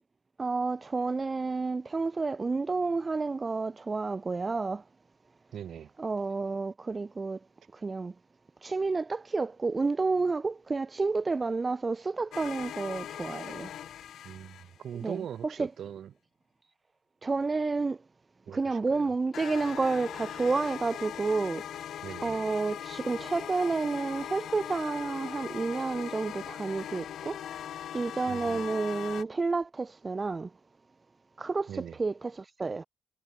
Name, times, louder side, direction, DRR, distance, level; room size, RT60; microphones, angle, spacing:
voice 1, 0.4-4.8 6.0-7.4 7.7-8.1 8.6-13.7 15.0-15.2 15.6-15.7 17.2-18.0 18.5-21.9 22.2-27.4 27.9-30.5 31.4-32.8, right 3 dB, 25° right, 0.5 m, -30 dB
voice 2, 5.5-5.9 14.2-16.1 18.5-19.1 22.0-22.4 28.3-28.7 31.7-32.0, right 9 dB, 65° right, 3.5 m, -41 dB
sound 1, 12.3-15.1 19.3-29.2, left 10 dB, 80° left, 1.1 m, -40 dB
wide cardioid pair, 155°, 0 cm